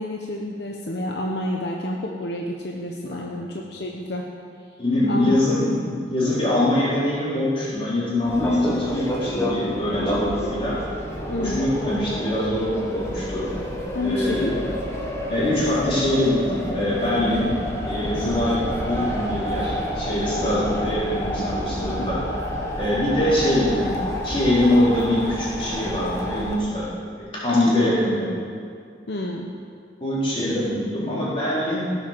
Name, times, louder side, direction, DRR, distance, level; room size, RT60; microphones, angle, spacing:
voice 1, 0.0-4.2 5.1-5.5 11.3-11.6 13.9-14.5 18.2-18.4 20.4-20.7 21.8-22.1 29.1-29.5, left 1 dB, 65° left, 0 dB, 0.9 m, -29 dB
voice 2, 3.1-3.5 4.8-10.8 11.3-13.5 14.0-14.6 15.3-17.5 17.9-22.2 22.8-26.9 27.2-28.3 30.0-31.8, left 1 dB, 30° left, -8 dB, 4.2 m, -23 dB
sound 1, 8.3-26.6, equal, 15° left, 1.4 m, -29 dB
16.5 x 7.5 x 7.0 m, 2.2 s
head